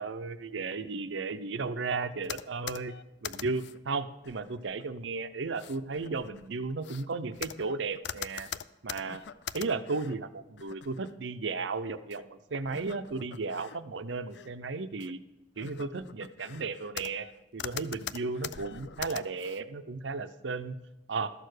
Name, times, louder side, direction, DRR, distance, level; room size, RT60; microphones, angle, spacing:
voice 1, 0.0-2.9 3.2-8.5 8.8-9.2 9.5-15.2 15.6-17.3 17.5-20.8 21.1-21.3, right 4 dB, 85° right, 11 dB, 0.7 m, -34 dB
sound 1, 2.2-3.8 4.2-4.8 5.5-10.2 10.6-11.1 12.1-12.2 12.7-13.8 14.2-14.5 15.0-15.1 15.6-17.3 17.6-19.6, left 9 dB, 70° left, 0.4 m, -42 dB
12.5 x 6.7 x 6.5 m, 0.99 s
head